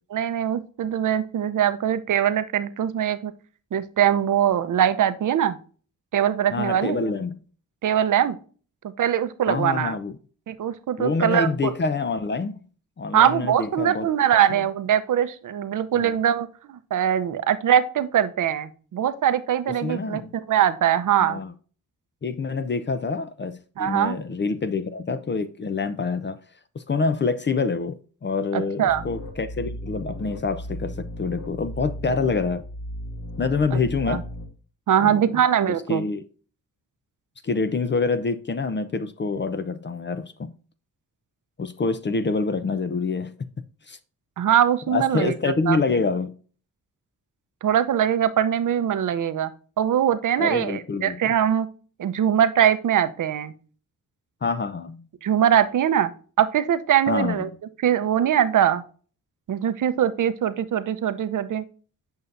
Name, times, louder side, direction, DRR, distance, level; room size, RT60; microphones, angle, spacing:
voice 1, 0.1-3.3 3.7-5.6 6.1-7.0 7.8-8.4 9.0-10.0 10.5-11.7 13.1-21.4 23.8-24.2 28.5-29.0 33.7-33.8 34.1-34.2 34.9-36.0 44.4-45.8 47.6-49.5 49.8-51.7 52.0-53.5 55.2-56.1 56.4-57.5 57.8-58.8 59.5-61.6, right 10 dB, 65° right, 0.7 m, -22 dB
voice 2, 6.5-7.3 9.5-10.2 11.0-12.6 13.0-14.1 14.5-14.6 15.9-16.1 19.8-20.4 21.2-21.5 22.2-26.4 26.7-32.6 33.4-34.3 35.0-35.4 35.7-36.2 37.4-40.6 41.6-43.5 43.9-44.0 44.9-46.3 50.4-51.2 54.4-55.1 57.1-57.6, left 4 dB, 35° left, 0.6 m, -26 dB
sound 1, 28.9-34.5, left 1 dB, 55° left, 2.3 m, -36 dB
8.0 x 5.4 x 2.6 m
cardioid pair, 70°, 33 cm